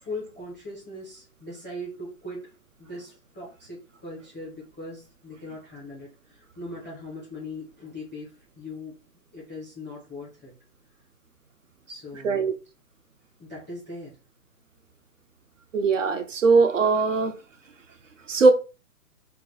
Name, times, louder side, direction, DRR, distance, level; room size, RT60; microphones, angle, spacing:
voice 1, 0.0-2.5 2.8-9.0 9.3-10.5 11.9-12.5 13.4-14.2, left 1 dB, 5° right, 0.6 m, -40 dB
voice 2, 15.7-17.3 18.3-18.5, right 4 dB, 55° right, 0.5 m, -20 dB
2.4 x 2.4 x 3.8 m
hypercardioid pair, 160°, 47 cm